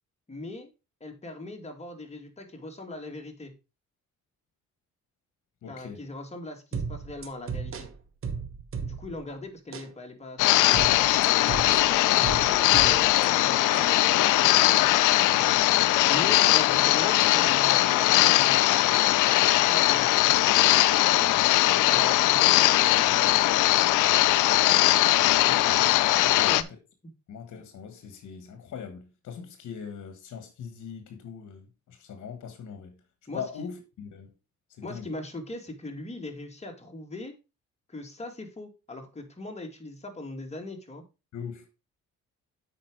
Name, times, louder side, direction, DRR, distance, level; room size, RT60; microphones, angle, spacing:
voice 1, 0.3-0.7 1.0-3.5 5.7-7.9 8.8-14.9 16.1-21.4 21.9-23.5 26.2-26.6 27.0-27.1 33.3-33.7 34.8-37.3 37.9-41.0, left 2 dB, 20° left, 2.3 m, -40 dB
voice 2, 5.6-6.0 25.5-25.9 26.3-26.6 27.3-33.0 33.3-34.3 34.7-35.0 41.3-41.7, left 7 dB, 65° left, 1.4 m, -41 dB
sound 1, 6.7-9.3 9.7-9.9 10.7-13.3 13.7-13.9, right 6 dB, 45° right, 1.2 m, -35 dB
sound 2, 10.4-26.6, left 16 dB, 85° left, 0.5 m, -21 dB
7.8 x 5.3 x 4.6 m
cardioid pair, 90°, 30 cm